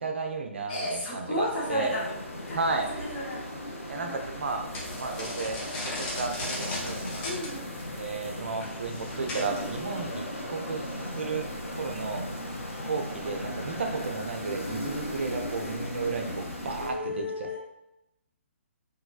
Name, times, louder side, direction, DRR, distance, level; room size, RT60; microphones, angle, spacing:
voice 1, 0.0-1.9 2.5-2.9 3.9-4.6 5.0-5.6 6.0-7.3 7.6-10.8 11.2-11.5 11.8-12.2 12.8-17.6, right 4 dB, 60° right, 4 dB, 0.4 m, -33 dB
voice 2, 0.7-2.1 2.5-2.6 2.9-3.4 4.0-4.2 7.2-7.7 16.8-17.6, left 1 dB, 45° left, -7 dB, 1.2 m, -33 dB
sound 1, 1.2-16.9, left 1 dB, 85° left, 0.6 m, -37 dB
sound 2, 4.7-9.8, left 1 dB, 20° left, 0.6 m, -38 dB
3.0 x 2.3 x 2.4 m, 0.90 s
figure-of-eight pair, 130°, 7 cm